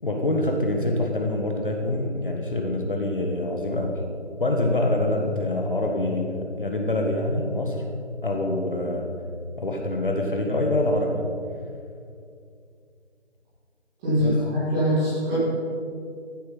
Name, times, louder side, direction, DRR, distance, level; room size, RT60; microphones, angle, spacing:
voice 1, 0.0-4.0 4.4-7.8 8.2-9.1 9.6-11.3 14.2-14.4, left 1 dB, 45° left, 2 dB, 1.6 m, -25 dB
voice 2, 14.0-15.4, equal, 5° right, -12 dB, 1.9 m, -23 dB
14.5 x 9.4 x 5.8 m, 2.4 s
figure-of-eight pair, 170°, 36 cm